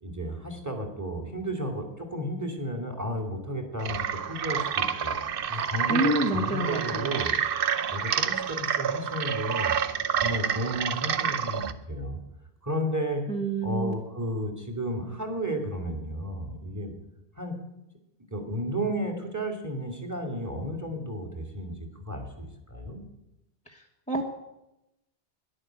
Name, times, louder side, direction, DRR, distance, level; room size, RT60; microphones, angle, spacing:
voice 1, 0.0-5.1 5.5-7.3 7.9-9.7 10.2-12.2 12.6-13.2 13.6-16.9 17.4-17.5 18.3-23.0, equal, 15° right, 4 dB, 2.5 m, -33 dB
sound 1, 3.8-11.7, right 8 dB, 55° right, 0.8 m, -28 dB
voice 2, 5.9-7.1 13.3-13.9 23.7-24.2, right 1 dB, 5° left, -1 dB, 1.2 m, -28 dB
11.0 x 11.0 x 9.1 m, 0.91 s
omnidirectional pair, 1.2 m